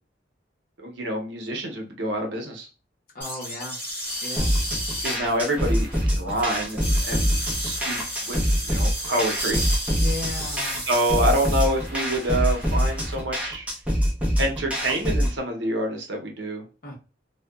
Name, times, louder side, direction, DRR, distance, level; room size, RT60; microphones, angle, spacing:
voice 1, 0.8-2.7 5.0-8.0 8.2-9.6 10.9-13.7 14.4-16.6, right 1 dB, 75° right, 2 dB, 0.7 m, -27 dB
voice 2, 3.1-3.8 4.2-4.5 9.9-10.8 16.8-17.0, left 2 dB, 50° left, -1 dB, 0.8 m, -35 dB
sound 1, 3.2-13.1, equal, 10° left, 0.9 m, -33 dB
sound 2, 4.4-15.4, equal, 5° right, 0.5 m, -25 dB
2.7 x 2.2 x 2.3 m, 0.33 s
head